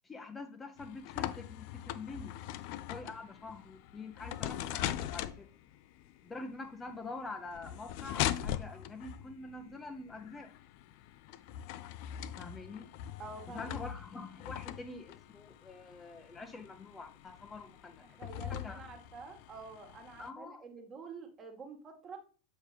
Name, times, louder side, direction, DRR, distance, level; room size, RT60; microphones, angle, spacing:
voice 1, 0.0-2.4 2.9-5.5 6.2-10.5 12.4-12.9 13.5-18.0 18.5-18.8 20.2-20.6, left 3 dB, 15° left, 6 dB, 0.7 m, -46 dB
sound 1, 0.8-20.3, left 12 dB, 50° left, 0.4 m, -41 dB
voice 2, 13.2-13.7 18.0-22.2, right 4 dB, 30° right, 4 dB, 1.5 m, -48 dB
7.5 x 5.0 x 3.2 m, 0.39 s
figure-of-eight pair, 85°, 0 cm